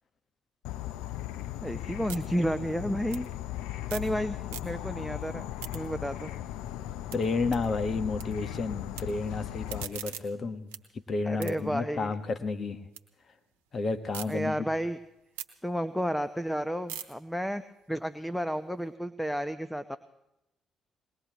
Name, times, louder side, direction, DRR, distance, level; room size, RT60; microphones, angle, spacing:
Insect / Frog, 0.6-9.8, left 13 dB, 80° left, 0.6 m, -37 dB
sound 1, 1.2-4.2 4.4-5.0 5.4-8.2 8.5-9.0 9.4-13.0 13.4-14.3 14.7-18.9, right 10 dB, 90° right, 1.0 m, -46 dB
voice 1, 1.6-3.3 3.9-4.4 4.6-5.4 5.7-6.3 11.3-12.1 14.3-15.0 15.6-17.6 17.9-20.0, equal, 5° left, 12 dB, 0.8 m, -31 dB
voice 2, 7.1-12.8 13.7-14.7, left 3 dB, 50° left, 10 dB, 1.4 m, -31 dB
22.0 x 20.0 x 3.1 m, 0.90 s
hypercardioid pair, 50°, 0 cm